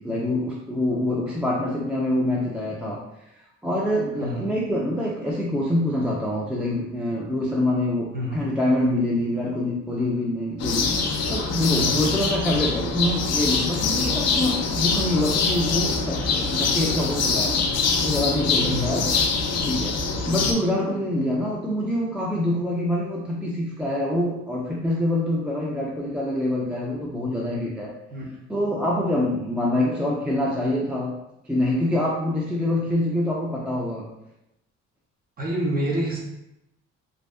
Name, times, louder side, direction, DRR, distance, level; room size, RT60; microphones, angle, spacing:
voice 1, 0.0-3.0 3.6-11.0 11.3-17.6 18.0-19.2 19.7-27.9 28.5-31.2 31.5-34.1, left 1 dB, 5° right, -4 dB, 0.3 m, -25 dB
sound 1, 10.6-20.5, left 4 dB, 60° left, 0.4 m, -24 dB
voice 2, 18.6-18.9 28.1-28.2 35.4-36.2, equal, 30° right, -3 dB, 0.8 m, -27 dB
2.6 x 2.3 x 2.3 m, 0.87 s
cardioid pair, 90°, 30 cm